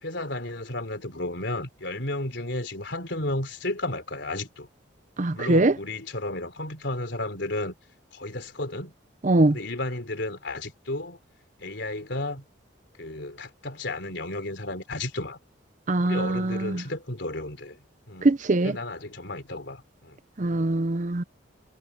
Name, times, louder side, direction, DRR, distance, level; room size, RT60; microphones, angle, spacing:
voice 1, 0.0-4.7 5.3-7.8 8.1-8.9 9.5-11.2 11.6-12.4 13.0-15.4 16.0-18.3 18.6-20.2, left 2 dB, 65° left, 4.0 m, -33 dB
voice 2, 5.2-5.8 9.2-9.6 15.9-16.8 18.2-18.8 20.4-21.2, right 2 dB, 40° right, 0.6 m, -22 dB
head